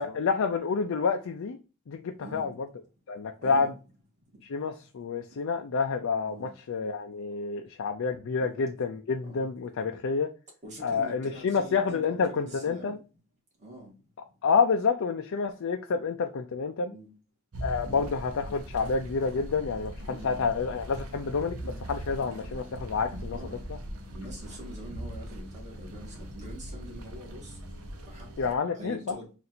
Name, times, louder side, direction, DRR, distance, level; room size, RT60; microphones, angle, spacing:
voice 1, 0.0-1.6 1.9-2.5 3.1-3.7 4.4-10.3 10.8-13.0 14.4-16.9 17.6-23.4 23.7-23.8 28.4-29.1, left 5 dB, 65° left, 0.4 m, -29 dB
voice 2, 3.4-3.7 5.3-5.4 6.2-6.5 8.4-8.5 9.2-9.5 10.6-13.0 13.6-13.9 16.9-17.1 17.8-18.1 20.0-20.4 21.6-21.8 23.3-23.6 24.1-29.3, right 1 dB, 35° right, 1.9 m, -45 dB
sound 1, 17.5-28.5, equal, 85° right, 0.8 m, -40 dB
3.9 x 2.5 x 4.2 m
head